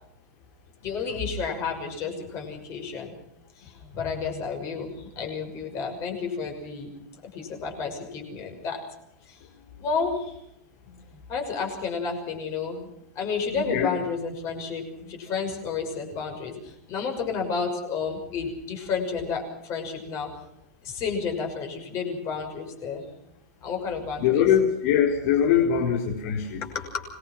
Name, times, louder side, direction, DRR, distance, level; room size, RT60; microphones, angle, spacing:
voice 1, 0.8-3.1 3.6-6.9 7.3-8.8 9.3-9.4 9.8-10.3 10.9-12.9 13.1-20.3 20.8-23.0 23.6-24.6 25.2-26.0 26.6-27.0, left 5 dB, 30° left, 3 dB, 6.0 m, -31 dB
voice 2, 13.5-13.9 24.2-26.6, left 8 dB, 50° left, 1 dB, 4.4 m, -22 dB
26.0 x 20.5 x 6.1 m, 0.79 s
supercardioid pair, 165°, 10 cm